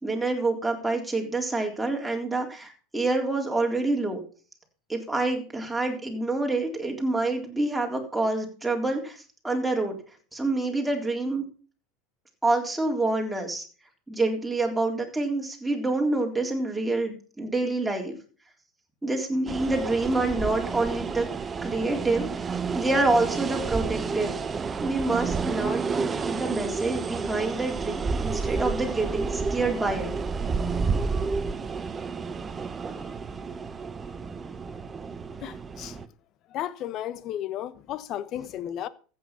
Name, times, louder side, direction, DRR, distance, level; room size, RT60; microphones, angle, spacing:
voice 1, 0.0-4.2 4.9-10.0 10.3-11.5 12.4-13.6 14.1-18.1 19.0-21.3 21.6-24.4 24.8-30.1, right 2 dB, 5° right, 3.7 m, -27 dB
sound 1, 19.5-36.1, right 5 dB, 25° right, 1.0 m, -30 dB
voice 2, 35.4-36.0 36.5-38.9, left 11 dB, 50° left, 1.1 m, -34 dB
14.5 x 7.9 x 5.9 m
hypercardioid pair, 85°, 0 cm